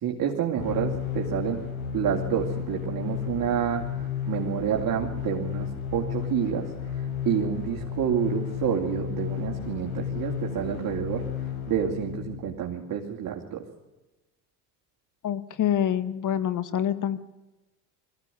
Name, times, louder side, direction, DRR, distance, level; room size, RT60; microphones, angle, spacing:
voice 1, 0.0-1.6 1.9-3.8 4.3-11.2 11.7-13.6, right 9 dB, 45° right, 0 dB, 3.1 m, -28 dB
sound 1, 0.6-12.5, left 8 dB, 70° left, 5.2 m, -33 dB
voice 2, 15.2-17.2, left 10 dB, 40° left, 14 dB, 1.5 m, -26 dB
21.0 x 15.0 x 9.4 m, 1.1 s
hypercardioid pair, 75°, 47 cm